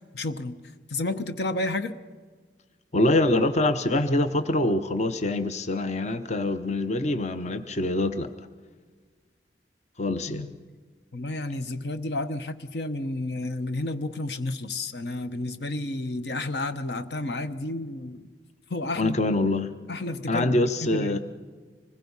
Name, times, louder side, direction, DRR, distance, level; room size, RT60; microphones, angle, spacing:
voice 1, 0.1-0.6 0.9-2.0 10.3-10.5 11.1-18.3 18.7-19.3 19.9-21.2, left 2 dB, 65° left, 10 dB, 1.0 m, -31 dB
voice 2, 2.9-8.3 10.0-10.4 18.9-19.7 20.3-21.2, left 2 dB, 40° left, 10 dB, 0.8 m, -25 dB
25.5 x 20.5 x 5.5 m, 1.5 s
head